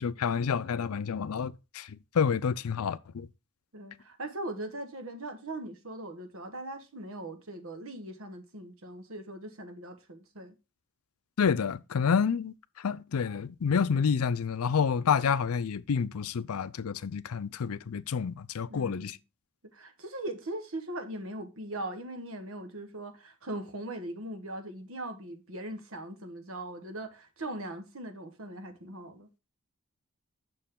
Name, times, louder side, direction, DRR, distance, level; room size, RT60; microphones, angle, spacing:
voice 1, 0.0-3.3 11.4-19.2, left 6 dB, 80° left, 0.5 m, -29 dB
voice 2, 3.7-10.5 18.7-19.2 19.7-29.3, right 1 dB, 65° right, 1.2 m, -40 dB
6.8 x 6.3 x 3.6 m
head